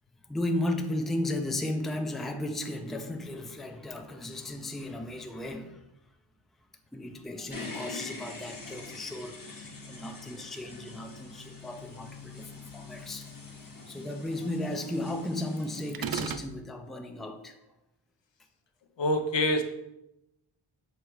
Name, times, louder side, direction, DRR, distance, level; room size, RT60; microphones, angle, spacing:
voice 1, 0.3-5.8 6.9-13.3 13.9-17.6, left 1 dB, ahead, 5 dB, 0.5 m, -35 dB
sound 1, 7.5-15.9, left 3 dB, 40° left, 1.3 m, -44 dB
sound 2, 15.9-16.5, right 7 dB, 50° right, 0.4 m, -32 dB
voice 2, 19.0-19.6, left 1 dB, 60° left, 6 dB, 0.8 m, -25 dB
6.5 x 3.4 x 4.5 m, 0.88 s
wide cardioid pair, 65°, 50 cm